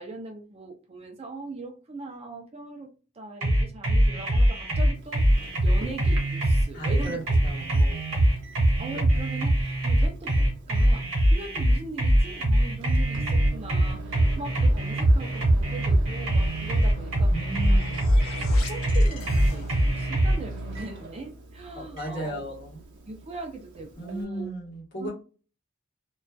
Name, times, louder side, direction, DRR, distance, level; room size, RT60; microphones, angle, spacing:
voice 1, 0.0-2.9 3.1-5.2 5.6-7.4 7.7-8.0 8.8-17.9 18.7-22.5 23.1-24.5 25.0-25.1, right 3 dB, 30° right, 3 dB, 0.4 m, -40 dB
sound 1, 3.4-20.4, right 1 dB, 80° right, 1.0 m, -22 dB
Microwave oven, 4.9-24.2, right 1 dB, 60° right, 0.7 m, -40 dB
voice 2, 6.7-7.7 17.3-18.1 21.7-22.8 24.0-25.1, right 1 dB, 55° left, -3 dB, 1.0 m, -35 dB
sound 2, 17.2-20.1, left 5 dB, 80° left, 0.5 m, -43 dB
2.4 x 2.3 x 2.2 m, 0.35 s
head